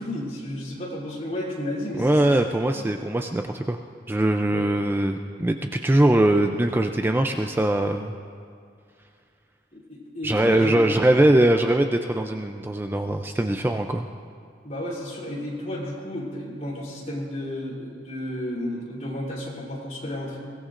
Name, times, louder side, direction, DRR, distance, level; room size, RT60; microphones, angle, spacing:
voice 1, 0.0-2.1 2.4-2.9 4.5-4.7 9.7-10.8 14.6-20.4, left 1 dB, 40° left, -4 dB, 3.4 m, -32 dB
voice 2, 2.0-3.8 4.1-8.2 10.2-14.1, right 1 dB, 10° right, 5 dB, 0.4 m, -21 dB
22.5 x 17.0 x 2.5 m, 2.3 s
head